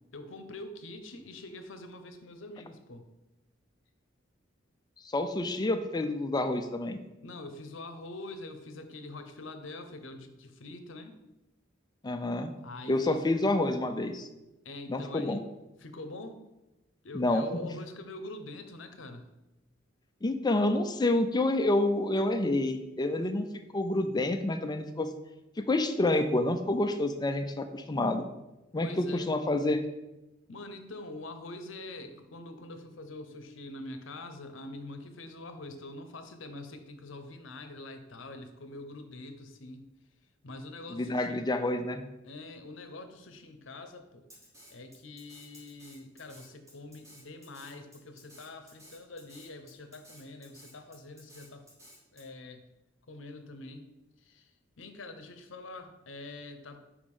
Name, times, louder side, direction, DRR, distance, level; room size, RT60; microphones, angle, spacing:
voice 1, 0.1-3.0 7.2-11.1 12.6-13.4 14.6-15.4 15.8-16.4 17.0-19.3 28.8-29.3 30.5-39.9 40.4-41.5 42.2-44.2 44.7-51.6 52.1-52.6 53.1-53.9 54.2-54.5 54.8-56.8, left 2 dB, 70° left, 8 dB, 0.8 m, -44 dB
voice 2, 5.1-7.0 12.0-12.5 12.9-14.3 14.9-15.4 17.1-17.6 20.2-23.5 23.7-25.1 25.6-28.3 28.7-29.8 40.9-42.0, left 2 dB, 20° left, 8 dB, 0.4 m, -28 dB
Drum kit, 44.3-52.2, equal, 15° right, 2.2 m, -54 dB
5.1 x 5.0 x 5.4 m, 0.98 s
head